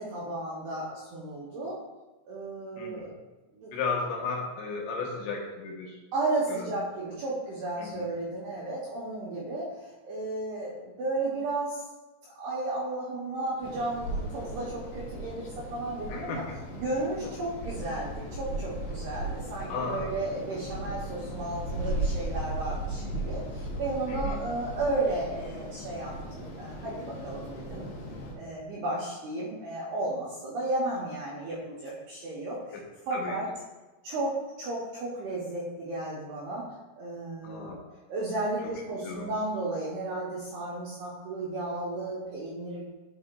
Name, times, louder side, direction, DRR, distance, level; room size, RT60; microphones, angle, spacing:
voice 1, 0.0-1.8 2.3-3.1 3.5-3.8 6.1-11.8 12.4-16.4 16.8-27.9 28.3-32.8 33.1-33.4 34.0-36.6 37.0-37.8 38.1-42.8, right 2 dB, 75° right, -6 dB, 2.4 m, -33 dB
voice 2, 2.8-3.1 3.7-6.0 6.5-6.7 7.8-8.0 16.1-16.6 17.2-17.4 19.7-20.1 23.0-23.3 24.1-24.4 32.7-32.8 33.1-33.4 37.4-37.8 38.6-38.7 39.0-39.3, left 4 dB, 75° left, -1 dB, 3.0 m, -35 dB
sound 1, 13.6-28.3, right 1 dB, 60° left, 2.8 m, -36 dB
12.0 x 4.9 x 2.3 m, 1.2 s
omnidirectional pair, 5.8 m